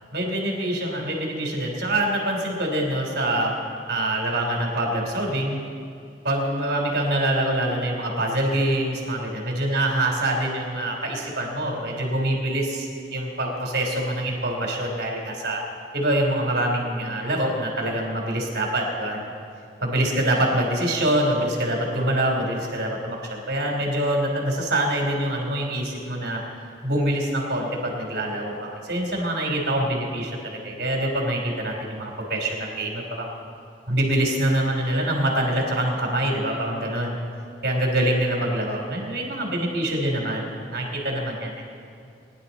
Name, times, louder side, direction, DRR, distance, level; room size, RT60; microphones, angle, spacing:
voice 1, 0.1-3.5 3.9-5.6 6.2-15.6 15.9-19.3 19.8-26.4 26.8-33.3 33.9-37.1 37.6-41.5, right 1 dB, 65° right, 0 dB, 3.1 m, -25 dB
21.0 x 10.5 x 4.1 m, 2.4 s
head